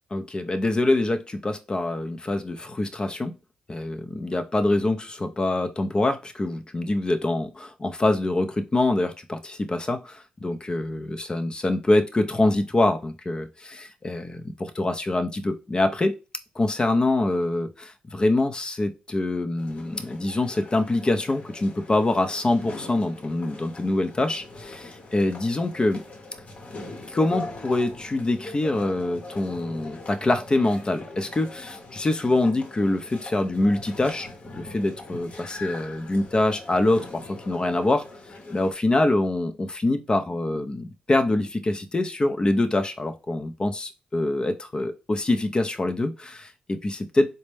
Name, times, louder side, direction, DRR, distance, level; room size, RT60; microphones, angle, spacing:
voice 1, 0.1-3.3 3.7-16.2 16.6-26.0 27.1-34.3 34.5-38.0 38.5-47.3, left 2 dB, 30° left, 7 dB, 0.7 m, -25 dB
sound 1, 19.6-38.7, left 2 dB, 50° left, 1.0 m, -41 dB
4.1 x 2.2 x 3.3 m, 0.30 s
supercardioid pair, 65°, 3 cm